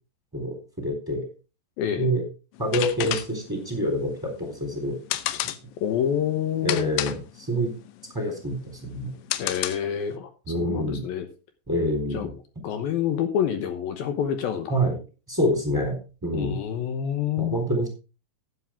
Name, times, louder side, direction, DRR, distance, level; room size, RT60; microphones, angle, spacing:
voice 1, 0.3-1.3 2.0-2.2 2.6-5.0 6.6-7.7 8.1-9.1 10.5-11.0 11.7-12.3 14.7-15.0 15.3-16.6 17.4-17.9, equal, 5° right, 3 dB, 2.8 m, -26 dB
voice 2, 1.8-2.1 5.8-6.9 9.4-11.3 12.1-12.3 12.6-14.7 16.3-17.6, left 9 dB, 70° left, 8 dB, 2.5 m, -27 dB
sound 1, 2.5-10.1, left 14 dB, 85° left, 3.1 m, -32 dB
12.0 x 9.7 x 3.6 m, 0.32 s
omnidirectional pair, 5.0 m